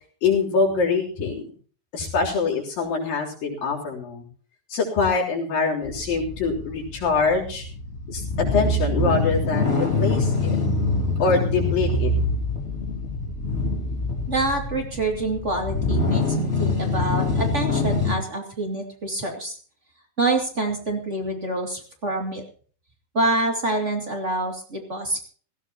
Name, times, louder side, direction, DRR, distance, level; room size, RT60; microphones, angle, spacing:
voice 1, 0.2-1.4 1.9-4.3 4.7-7.7 8.1-8.2 8.5-10.6 11.2-12.1, left 4 dB, 65° left, -2 dB, 5.2 m, -24 dB
sound 1, 5.8-18.1, left 2 dB, 20° left, 3.1 m, -24 dB
voice 2, 14.3-19.5 20.2-22.4 23.1-25.2, right 2 dB, 25° right, 2 dB, 2.1 m, -26 dB
18.0 x 16.0 x 3.0 m, 0.42 s
omnidirectional pair, 4.3 m